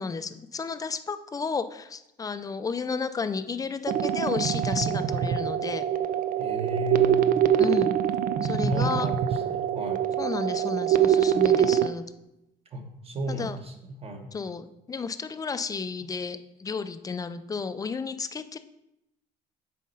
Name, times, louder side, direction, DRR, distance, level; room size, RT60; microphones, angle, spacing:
voice 1, 0.0-5.8 7.6-7.9 8.4-9.1 10.2-12.0 13.3-13.6 14.3-18.6, left 5 dB, 20° left, 11 dB, 0.5 m, -32 dB
sound 1, 3.9-11.9, right 9 dB, 55° right, 0.5 m, -24 dB
voice 2, 6.4-7.2 8.6-10.0 12.7-14.3, equal, 35° right, 4 dB, 1.3 m, -34 dB
7.5 x 4.2 x 5.5 m, 0.86 s
cardioid pair, 110°, 17 cm